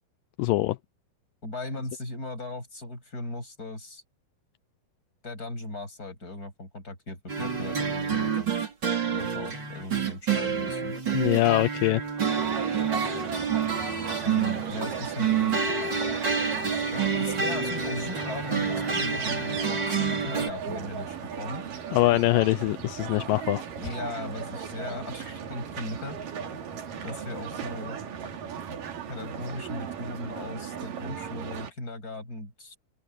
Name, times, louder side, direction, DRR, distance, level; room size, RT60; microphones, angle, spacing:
voice 1, 0.4-0.8 11.1-12.0 21.9-23.6, left 18 dB, 80° left, 2.0 m, -23 dB
voice 2, 1.4-4.0 5.2-8.6 9.0-11.0 14.2-15.7 16.9-21.6 23.8-26.2 27.0-28.0 29.1-32.7, left 2 dB, 20° left, 8.3 m, -38 dB
sound 1, 7.3-20.5, right 6 dB, 30° right, 3.8 m, -28 dB
sound 2, 12.2-31.7, right 7 dB, 60° right, 3.9 m, -37 dB
open air
omnidirectional pair, 4.5 m